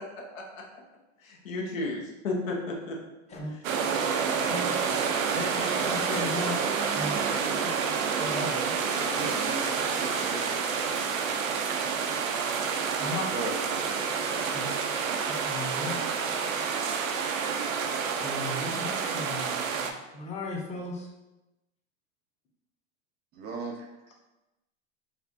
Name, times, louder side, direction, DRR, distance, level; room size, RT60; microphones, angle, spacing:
voice 1, 1.4-3.0, left 2 dB, 85° left, -1 dB, 1.0 m, -32 dB
sound 1, 3.6-19.9, right 6 dB, 90° right, 0.5 m, -29 dB
voice 2, 4.2-5.2 5.7-5.9 9.1-10.6 13.3-13.6 23.4-23.9, right 3 dB, 30° right, 1 dB, 0.3 m, -38 dB
voice 3, 5.3-6.6 6.9-7.3 7.6-7.7 8.2-9.3 13.0-13.3 14.5-14.7 15.3-16.0 18.2-21.1, left 2 dB, 15° left, 0 dB, 0.6 m, -36 dB
4.4 x 2.3 x 2.6 m, 0.99 s
hypercardioid pair, 110°, 39 cm